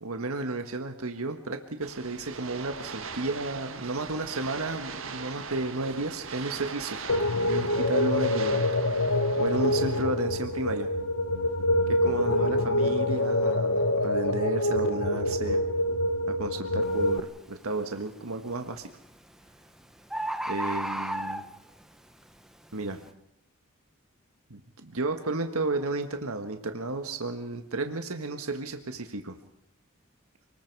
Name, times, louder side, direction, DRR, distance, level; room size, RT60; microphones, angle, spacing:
voice 1, 0.0-7.0 7.5-8.7 9.4-10.9 11.9-15.6 16.3-18.9 20.5-21.4 22.7-23.0 24.5-29.4, right 2 dB, 80° right, 6 dB, 1.6 m, -32 dB
sound 1, 1.8-10.0, right 5 dB, 65° right, 1.6 m, -40 dB
sound 2, 7.1-17.2, left 1 dB, 70° left, 1.3 m, -26 dB
Bird, 16.8-17.1 17.6-18.1 19.1-19.2 19.5-19.6 19.8-19.9 20.1-21.8 22.4-22.5, right 1 dB, ahead, 1.0 m, -32 dB
29.5 x 20.5 x 4.7 m, 0.81 s
head